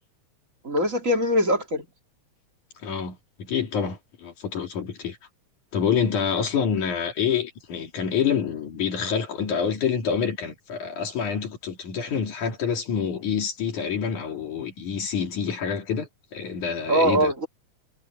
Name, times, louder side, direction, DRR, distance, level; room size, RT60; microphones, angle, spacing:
voice 1, 0.6-1.8 16.9-17.5, equal, 25° right, 2.8 m, -22 dB
voice 2, 2.8-5.2 5.7-17.3, left 7 dB, 75° left, 4.3 m, -27 dB
omnidirectional pair, 3.5 m